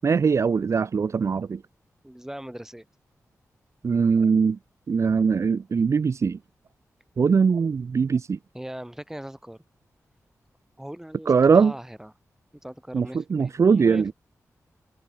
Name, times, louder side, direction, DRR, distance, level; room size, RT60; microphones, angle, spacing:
voice 1, 0.0-1.6 3.8-4.6 4.9-6.4 7.2-8.4 11.3-11.7 12.9-14.1, right 5 dB, 55° right, 0.5 m, -21 dB
voice 2, 2.0-2.8 8.5-9.6 10.8-12.1 12.6-14.1, right 1 dB, 5° right, 6.0 m, -39 dB
cardioid pair, 60°, 6 cm